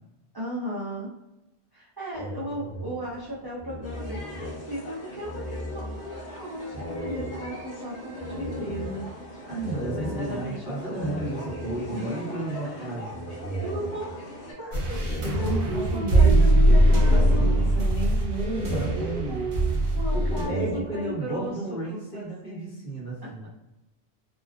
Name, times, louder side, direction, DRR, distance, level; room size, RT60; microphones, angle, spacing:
voice 1, 0.3-1.1 1.7-9.5 9.9-11.2 11.9-12.1 12.6-12.9 13.6-14.2 14.6-15.0 15.4-17.6 18.9-22.8 23.2-23.5, equal, 35° right, -7 dB, 0.4 m, -35 dB
sound 1, 2.1-4.9 5.2-6.3 6.7-12.1 13.1-14.4 14.8-16.1 16.5-18.0 18.4-19.7 20.1-21.4, equal, 30° left, 0.5 m, -36 dB
sound 2, 3.8-14.5, left 1 dB, 75° left, 1.1 m, -42 dB
voice 2, 9.5-13.1 15.2-19.5 20.1-23.5, right 2 dB, 55° left, -5 dB, 1.1 m, -33 dB
sound 3, 14.7-20.4, right 1 dB, 55° right, 0.8 m, -21 dB
2.4 x 2.2 x 2.4 m, 0.96 s
omnidirectional pair, 1.2 m